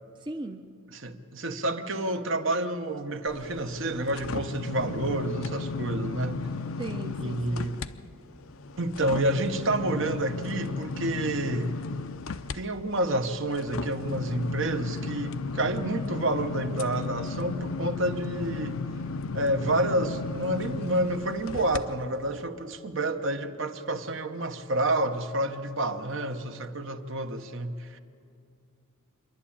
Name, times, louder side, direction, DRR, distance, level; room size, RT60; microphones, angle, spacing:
voice 1, 0.2-0.6 6.8-7.7, right 2 dB, 20° right, 0.6 m, -37 dB
voice 2, 0.9-6.4 7.2-7.8 8.8-11.7 12.5-18.8 19.3-28.0, right 1 dB, 60° right, 1.0 m, -29 dB
sound 1, 3.3-7.9 8.3-21.8 22.3-22.4, left 4 dB, 65° left, 0.6 m, -35 dB
26.5 x 11.5 x 8.7 m
head